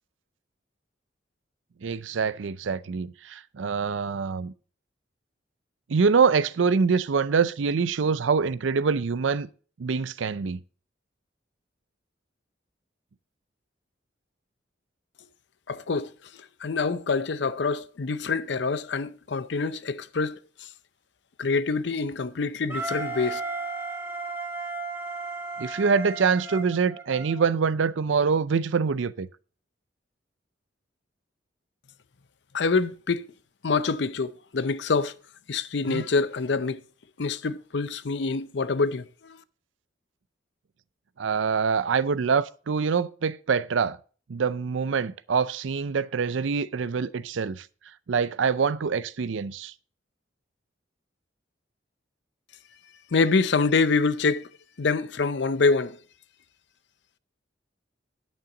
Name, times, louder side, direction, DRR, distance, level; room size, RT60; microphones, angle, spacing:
voice 1, 1.8-4.5 5.9-9.5 9.8-10.6 25.6-29.3 35.9-36.0 41.2-44.0 44.3-47.7 48.1-49.7, right 5 dB, 80° right, 0.5 m, -25 dB
voice 2, 15.7-20.7 21.4-23.4 32.5-33.3 33.6-35.1 35.5-36.8 37.2-39.4 53.1-54.5 54.8-56.0, left 4 dB, 65° left, 0.6 m, -26 dB
Wind instrument woodwind instrument, 22.7-27.5, right 3 dB, 10° right, 1.6 m, -34 dB
9.7 x 8.7 x 3.8 m
head